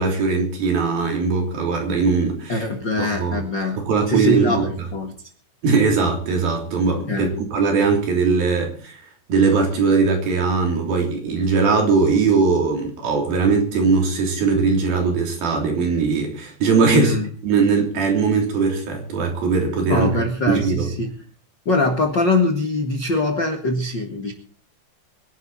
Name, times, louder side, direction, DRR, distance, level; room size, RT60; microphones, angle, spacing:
voice 1, 0.0-2.6 3.0-3.4 3.8-4.5 5.6-9.0 9.3-17.2 17.4-20.1 20.5-20.9, right 4 dB, 55° right, 2 dB, 4.9 m, -20 dB
voice 2, 2.5-3.8 4.1-5.1 7.1-7.4 16.9-17.3 19.9-21.1 21.6-24.3, left 2 dB, 75° left, 4 dB, 1.0 m, -22 dB
25.0 x 11.0 x 4.2 m, 0.42 s
omnidirectional pair, 5.4 m